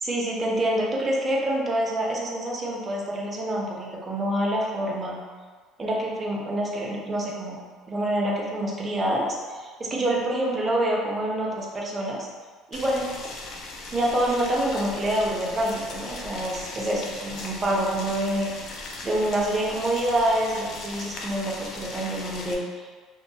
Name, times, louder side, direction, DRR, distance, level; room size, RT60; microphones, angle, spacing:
voice 1, 0.0-5.2 5.8-7.6 7.9-12.2 12.7-13.1 13.9-18.5 19.0-22.9, right 1 dB, 25° right, -3 dB, 0.5 m, -26 dB
Boiling, 12.7-22.5, left 2 dB, 50° left, 0.4 m, -38 dB
3.0 x 2.0 x 2.7 m, 1.5 s
cardioid pair, 125°, 0 cm